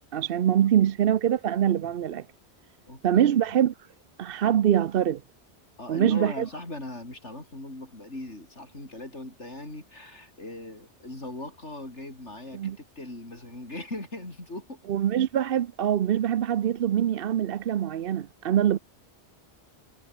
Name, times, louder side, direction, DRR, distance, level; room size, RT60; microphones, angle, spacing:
voice 1, 0.1-2.3 3.0-3.7 4.2-5.2 5.9-6.5 12.5-12.8 14.9-18.8, right 10 dB, 60° right, 0.8 m, -24 dB
voice 2, 5.8-14.8, left 1 dB, 90° left, 6.8 m, -39 dB
omnidirectional pair, 1.2 m